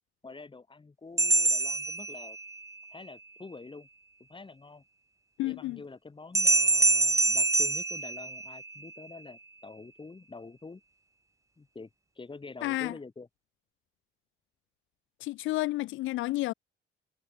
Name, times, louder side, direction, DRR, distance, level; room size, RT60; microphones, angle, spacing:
voice 1, 0.2-2.4 2.9-3.9 4.2-4.8 5.4-10.8 11.6-11.9 12.2-13.3, left 3 dB, 25° left, 5.1 m, -46 dB
sound 1, 1.2-2.7 6.3-8.9, right 3 dB, 15° right, 0.9 m, -25 dB
voice 2, 5.4-5.8 12.6-12.9 15.2-16.5, left 17 dB, 85° left, 0.5 m, -31 dB
cardioid pair, 90°, 20 cm